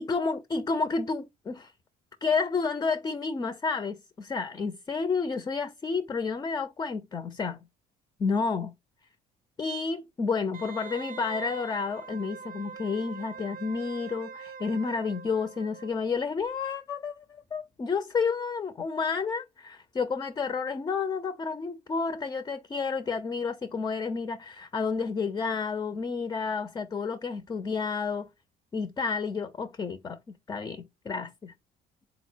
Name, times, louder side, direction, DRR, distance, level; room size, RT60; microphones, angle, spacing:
voice 1, 0.0-1.7 2.2-7.6 8.2-8.7 9.6-28.3 28.7-31.5, left 5 dB, 20° left, 0.4 m, -30 dB
Wind instrument woodwind instrument, 10.5-16.1 16.4-16.5, right 6 dB, 55° right, 0.4 m, -43 dB
3.9 x 2.0 x 4.3 m
cardioid pair, 110°, 17 cm